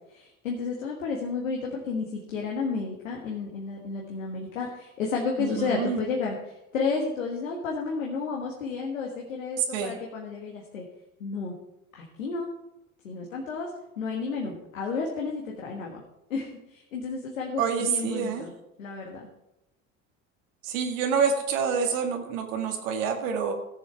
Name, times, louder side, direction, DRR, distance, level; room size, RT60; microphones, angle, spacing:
voice 1, 0.1-10.8 11.2-11.5 11.9-12.5 13.0-13.7 14.0-16.0 16.3-18.5 18.8-19.3, left 4 dB, 90° left, -1 dB, 1.7 m, -32 dB
voice 2, 5.4-6.0 9.6-10.0 17.6-18.5 20.6-23.5, right 6 dB, 75° right, 4 dB, 1.9 m, -27 dB
15.0 x 7.0 x 4.7 m, 0.89 s
hypercardioid pair, 75°, 39 cm